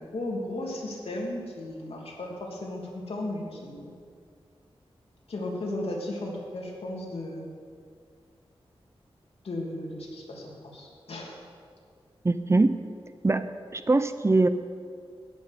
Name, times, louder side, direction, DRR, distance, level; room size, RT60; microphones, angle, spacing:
voice 1, 0.0-3.9 5.3-7.5 9.4-11.4, left 1 dB, 75° left, -2 dB, 2.9 m, -35 dB
voice 2, 12.2-12.8 13.2-13.5 13.7-14.5, right 2 dB, 25° right, 11 dB, 0.6 m, -22 dB
14.0 x 6.3 x 9.8 m, 2.2 s
wide cardioid pair, 95°, 10 cm